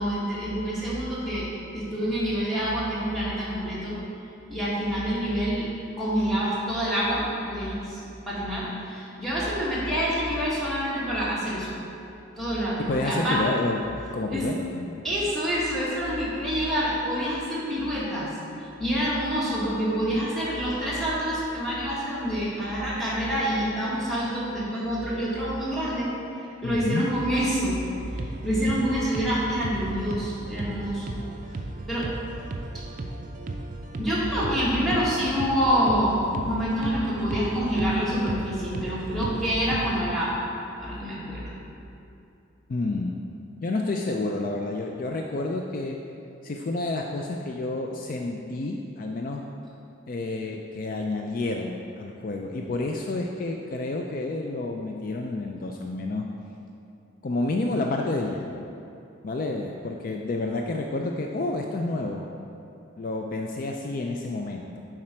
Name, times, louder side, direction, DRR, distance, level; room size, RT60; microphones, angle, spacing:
voice 1, 0.0-4.0 4.5-5.7 6.0-8.0 8.3-11.7 12.4-13.4 14.3-14.5 15.0-18.3 18.8-26.1 26.6-31.2 31.9-32.1 32.7-32.8 34.0-40.4 40.8-41.5, equal, ahead, -9 dB, 1.7 m, -27 dB
voice 2, 12.8-13.8 14.1-15.1 26.6-27.1 42.7-43.2 43.6-46.0 46.4-49.4 50.1-56.3 57.2-58.6 59.2-62.3 63.0-64.8, left 2 dB, 45° left, 1 dB, 0.4 m, -29 dB
sound 1, 28.0-40.0, right 2 dB, 40° right, 0.4 m, -36 dB
7.5 x 4.9 x 4.4 m, 2.7 s
head